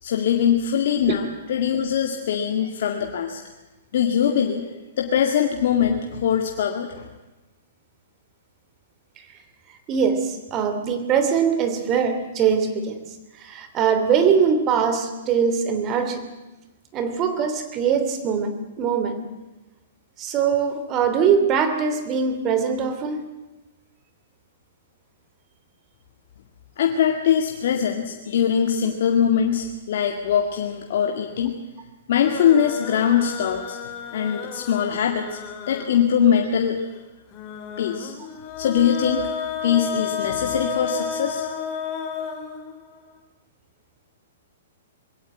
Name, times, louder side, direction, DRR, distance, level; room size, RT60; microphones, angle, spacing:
voice 1, 0.0-3.4 3.9-4.7 5.0-7.1 26.8-31.5 32.1-33.8 34.1-35.4 35.7-36.8 37.8-38.1 38.6-39.3 39.6-41.5, left 8 dB, 65° left, 3 dB, 2.0 m, -22 dB
voice 2, 9.9-13.0 13.4-16.3 16.9-19.2 20.2-23.3, right 6 dB, 30° right, 8 dB, 3.0 m, -22 dB
sound 1, 32.2-36.2 37.3-43.1, left 7 dB, 35° left, 3.4 m, -32 dB
21.5 x 16.5 x 9.1 m, 1.1 s
hypercardioid pair, 140°, 0 cm